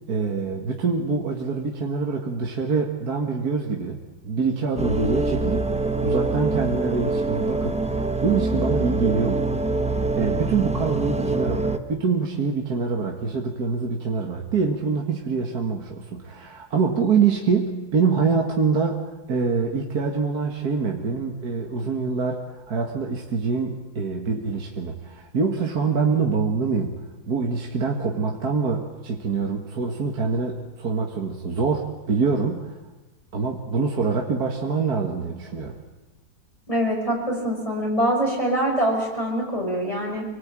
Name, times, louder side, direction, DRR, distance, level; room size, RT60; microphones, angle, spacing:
voice 1, 0.1-9.5 10.2-22.4 22.7-27.0 27.3-32.8 33.3-35.8, right 5 dB, 55° right, 1 dB, 2.3 m, -25 dB
sound 1, 4.8-11.8, right 2 dB, 5° right, 0.5 m, -25 dB
voice 2, 36.7-40.2, right 1 dB, 15° left, -1 dB, 6.2 m, -24 dB
26.0 x 19.0 x 9.0 m, 1.1 s
omnidirectional pair, 2.0 m